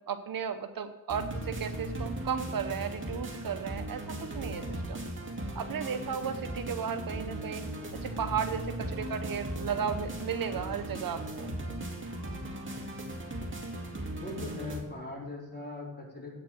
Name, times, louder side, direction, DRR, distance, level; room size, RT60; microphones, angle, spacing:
voice 1, 0.1-4.0 4.3-5.0 5.5-7.7 8.0-11.5, right 7 dB, 65° right, 9 dB, 0.9 m, -34 dB
sound 1, 1.1-14.8, right 1 dB, 35° right, 2.3 m, -38 dB
Speech, 4.0-5.0 5.3-6.4 6.8-7.3 7.5-8.4 8.6-9.8 10.2-11.3 11.7-11.8 12.1-13.1, left 2 dB, 50° left, 2.4 m, -57 dB
voice 2, 14.2-16.4, left 2 dB, 25° left, -4 dB, 4.3 m, -40 dB
8.7 x 6.7 x 7.5 m, 1.1 s
cardioid pair, 70°, 36 cm